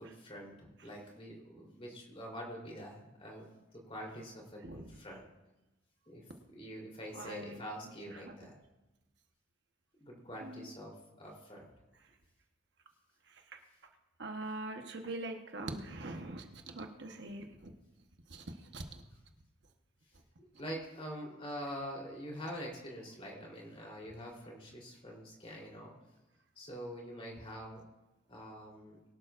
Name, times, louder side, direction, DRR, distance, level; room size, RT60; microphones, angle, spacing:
voice 1, 0.0-3.5 3.7-5.2 6.1-6.2 6.5-8.6 10.0-11.6 20.4-25.9 26.6-27.8 28.3-29.0, equal, 30° left, -2 dB, 3.6 m, -45 dB
voice 2, 7.1-7.6 8.3-8.4 10.4-10.7 14.2-17.7 18.3-18.4 18.7-18.8, right 2 dB, 55° right, 4 dB, 1.1 m, -42 dB
22.5 x 12.0 x 2.5 m, 1.0 s
head